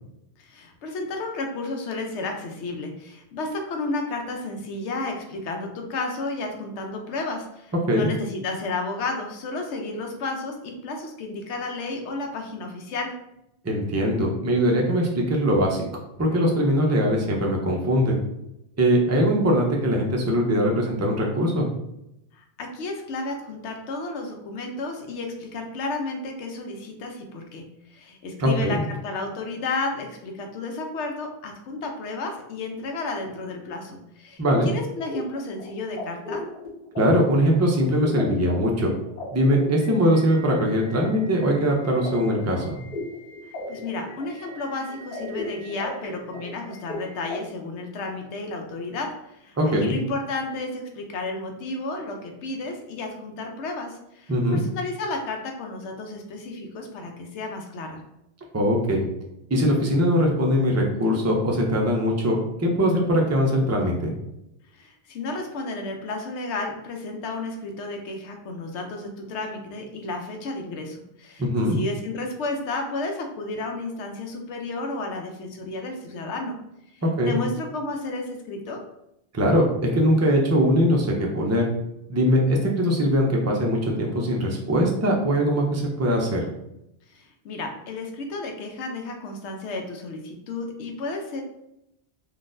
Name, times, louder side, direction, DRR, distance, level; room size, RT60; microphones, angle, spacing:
voice 1, 0.4-13.1 22.3-27.6 27.9-36.4 43.7-58.0 64.7-76.6 76.9-78.8 87.1-91.4, left 3 dB, 85° left, 3 dB, 0.9 m, -32 dB
voice 2, 13.6-15.9 16.2-18.2 18.8-21.7 28.4-28.8 34.4-34.7 37.0-38.9 39.3-42.6 49.6-50.0 54.3-54.6 58.5-59.1 59.5-64.1 71.4-71.8 77.2-77.3 79.3-81.7 82.1-86.4, equal, 25° right, -1 dB, 0.3 m, -21 dB
sound 1, 34.6-47.4, left 1 dB, 50° left, 1.4 m, -37 dB
3.8 x 2.5 x 2.5 m, 0.84 s
omnidirectional pair, 1.1 m